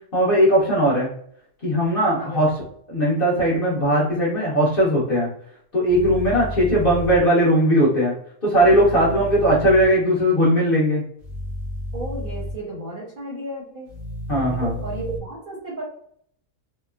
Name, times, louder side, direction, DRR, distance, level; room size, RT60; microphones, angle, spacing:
voice 1, 0.1-1.1 1.6-5.3 5.7-8.1 8.4-11.0 14.3-14.7, equal, 40° left, -6 dB, 1.0 m, -19 dB
sound 1, 5.9-7.2 8.5-9.9 11.2-12.5 13.9-15.2, equal, 60° right, 0.4 m, -32 dB
voice 2, 11.9-13.9 14.3-15.8, right 1 dB, 40° right, -6 dB, 0.8 m, -33 dB
3.0 x 2.1 x 2.3 m, 0.64 s
omnidirectional pair, 1.6 m